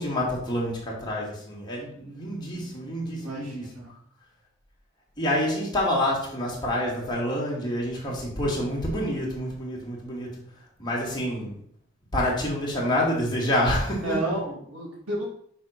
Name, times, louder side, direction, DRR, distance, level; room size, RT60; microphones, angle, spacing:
voice 1, 0.0-3.7 5.2-11.5 12.1-14.3, left 1 dB, 20° left, -4 dB, 2.4 m, -28 dB
voice 2, 2.0-3.9 13.9-15.3, right 1 dB, 90° right, -6 dB, 3.4 m, -33 dB
6.2 x 4.5 x 5.7 m, 0.64 s
head